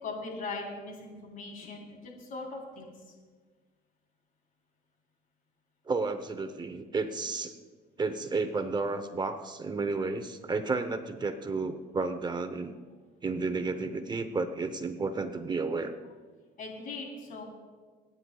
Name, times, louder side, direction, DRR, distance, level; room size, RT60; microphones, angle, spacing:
voice 1, 0.0-2.9 16.6-17.4, left 3 dB, 55° left, 0 dB, 3.7 m, -40 dB
voice 2, 5.9-7.6 8.0-12.7 13.2-15.9, right 3 dB, 25° right, 9 dB, 0.8 m, -32 dB
26.5 x 9.6 x 2.3 m, 1.4 s
cardioid pair, 110°, 17 cm